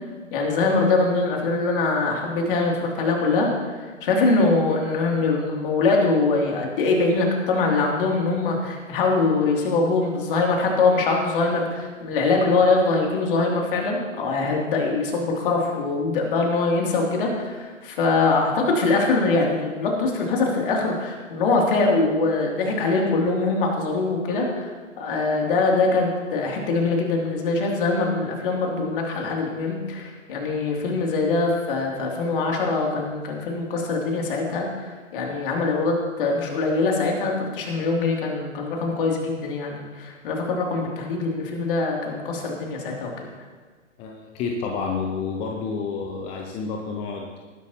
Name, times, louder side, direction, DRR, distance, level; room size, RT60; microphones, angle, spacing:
voice 1, 0.3-3.5 3.8-43.3, left 3 dB, 45° left, 0 dB, 3.0 m, -23 dB
voice 2, 44.0-47.4, left 5 dB, 15° left, 1 dB, 0.7 m, -29 dB
19.0 x 10.5 x 3.0 m, 1.4 s
figure-of-eight pair, 125°, 38 cm